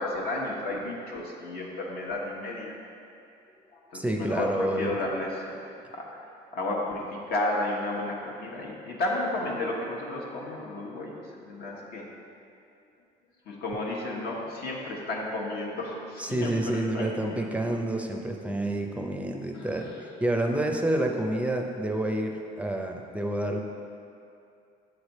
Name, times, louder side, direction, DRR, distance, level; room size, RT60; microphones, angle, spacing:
voice 1, 0.0-2.7 3.9-5.6 5.9-6.2 6.5-11.2 11.5-12.0 13.5-17.7 19.5-19.7, left 2 dB, 70° left, -2 dB, 1.1 m, -32 dB
voice 2, 3.9-5.0 16.2-19.9 20.2-23.6, right 1 dB, 10° right, 2 dB, 0.5 m, -28 dB
8.0 x 3.3 x 4.1 m, 2.6 s
cardioid pair, 110°, 17 cm